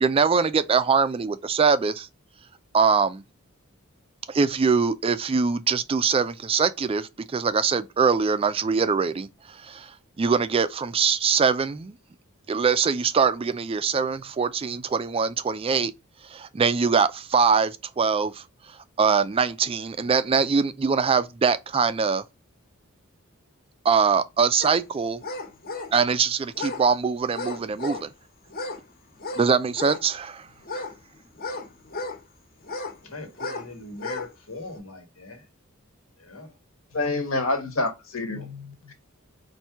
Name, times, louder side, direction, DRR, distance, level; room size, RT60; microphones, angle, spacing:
voice 1, 0.0-2.1 2.7-3.2 4.3-11.9 12.5-15.9 16.2-18.4 19.0-22.2 23.8-25.2 25.9-28.1 29.4-30.5, right 5 dB, 25° right, 0.3 m, -23 dB
sound 1, 24.6-24.7 25.2-26.0 26.5-26.8 27.3-28.1 28.5-28.8 29.2-30.0 30.6-32.2 32.6-33.0 33.3-33.7 33.9-34.3 34.7-34.8, left 3 dB, 45° left, 1.1 m, -34 dB
voice 2, 33.0-35.4 36.2-36.5 38.4-38.5, left 2 dB, 85° left, 1.6 m, -40 dB
voice 3, 36.9-38.9, left 2 dB, 70° left, 1.3 m, -27 dB
4.3 x 2.6 x 4.5 m
head